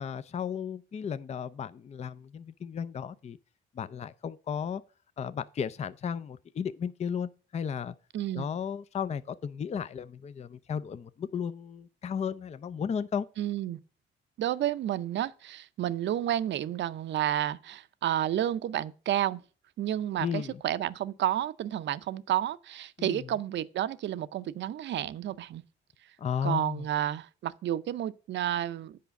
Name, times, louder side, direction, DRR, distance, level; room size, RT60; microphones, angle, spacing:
voice 1, 0.0-3.4 3.7-4.8 5.2-7.9 8.3-13.3 20.2-20.6 23.0-23.3 26.2-26.9, left 7 dB, 35° left, 0.5 m, -34 dB
voice 2, 8.1-8.5 13.4-13.8 14.4-19.4 19.8-25.6 26.4-29.0, right 12 dB, 65° right, 0.6 m, -31 dB
8.4 x 5.0 x 6.8 m
cardioid pair, 90°, 20 cm